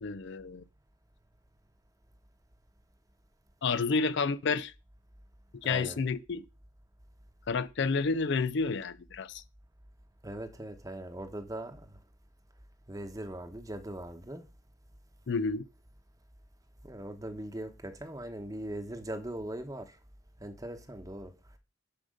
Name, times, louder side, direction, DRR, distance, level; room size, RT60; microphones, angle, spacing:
voice 1, 0.0-0.6 3.6-4.7 5.5-6.4 7.5-9.4 15.3-15.6, left 4 dB, 60° left, 0.4 m, -30 dB
voice 2, 5.6-6.0 10.2-12.0 12.9-14.4 16.8-20.0 20.4-21.3, right 1 dB, 15° right, 1.0 m, -40 dB
10.5 x 5.1 x 5.0 m
head